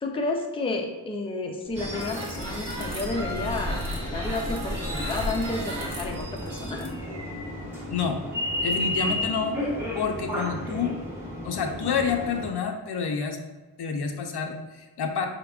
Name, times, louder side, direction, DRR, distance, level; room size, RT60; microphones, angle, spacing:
voice 1, 0.0-6.9, left 2 dB, 15° left, 1 dB, 0.4 m, -31 dB
sound 1, 1.7-7.6, equal, 70° right, 1.1 m, -34 dB
sound 2, 1.8-12.5, left 1 dB, 5° right, 0.9 m, -33 dB
voice 2, 8.6-9.6 9.9-10.9 11.4-13.4 13.8-15.3, left 6 dB, 70° left, 4 dB, 0.6 m, -28 dB
5.1 x 3.5 x 2.3 m, 1.2 s
wide cardioid pair, 120°, 41 cm